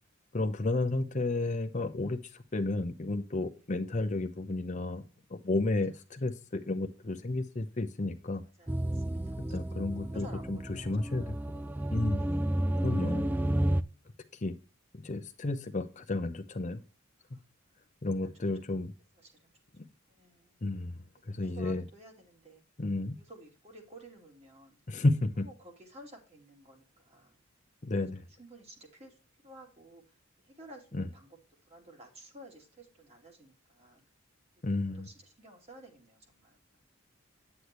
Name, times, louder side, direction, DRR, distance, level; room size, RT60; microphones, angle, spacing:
voice 1, 0.3-2.2 2.5-5.0 5.3-8.4 9.5-11.4 11.9-12.2 12.8-13.3 14.4-14.5 14.9-16.8 18.0-18.9 20.6-20.9 21.3-21.8 22.8-23.1 24.9-25.5 27.8-28.2 30.9-31.1 34.6-35.1, left 2 dB, 35° left, 7 dB, 0.7 m, -32 dB
voice 2, 8.6-9.6 10.0-11.2 12.1-12.7 18.2-18.4 19.1-19.5 20.1-20.5 21.3-22.6 23.2-24.8 25.4-27.3 28.0-28.1 28.4-29.2 29.4-30.0 30.5-31.4 31.7-34.0 34.9-36.6, right 1 dB, 30° right, 1 dB, 2.8 m, -53 dB
sound 1, 8.7-13.8, right 1 dB, 10° right, 0.4 m, -31 dB
9.8 x 8.1 x 3.0 m, 0.33 s
head